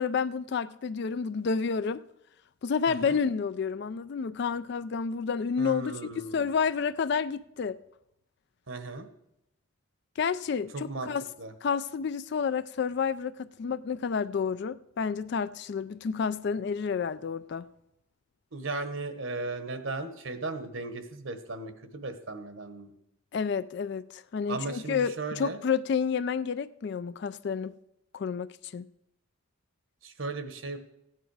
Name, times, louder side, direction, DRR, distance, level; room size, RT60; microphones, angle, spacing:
voice 1, 0.0-2.0 2.6-6.0 6.3-7.8 10.2-11.3 11.6-17.7 23.3-27.7 28.1-28.9, left 6 dB, 50° left, 0.3 m, -30 dB
voice 2, 2.9-3.2 5.6-6.5 8.7-9.1 10.7-11.1 11.4-11.5 18.5-22.9 24.5-25.6 30.0-30.8, right 3 dB, 65° right, 1.2 m, -36 dB
15.0 x 9.3 x 4.8 m
head